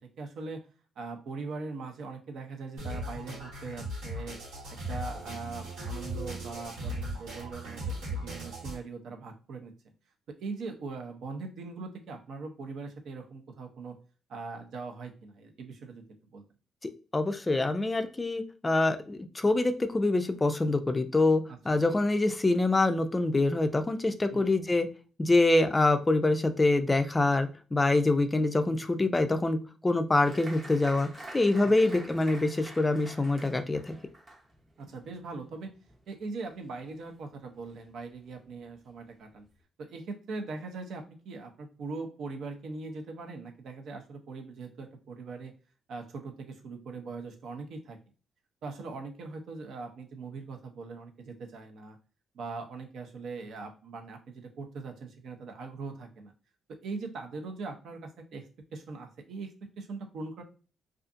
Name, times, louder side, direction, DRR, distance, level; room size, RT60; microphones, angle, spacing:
voice 1, 0.2-0.7 1.0-4.4 4.9-9.7 10.3-13.9 14.3-16.0 16.3-16.4 21.8-21.9 24.3-24.5 31.6-31.7 34.8-35.8 36.1-39.4 39.8-45.5 45.9-48.0 48.6-52.0 52.3-56.3 56.7-58.5 58.7-60.4, right 4 dB, 70° right, 4 dB, 0.6 m, -41 dB
sound 1, 2.8-8.8, right 1 dB, 90° right, 1.4 m, -38 dB
voice 2, 16.8-24.9 25.2-29.6 29.8-31.1 31.3-33.9, left 2 dB, 20° left, 8 dB, 0.3 m, -25 dB
Applause, 30.2-37.3 37.6-38.3 38.7-38.8 39.1-39.6, right 2 dB, 30° right, 0.8 m, -48 dB
2.5 x 2.4 x 2.5 m, 0.36 s
cardioid pair, 90°, 0 cm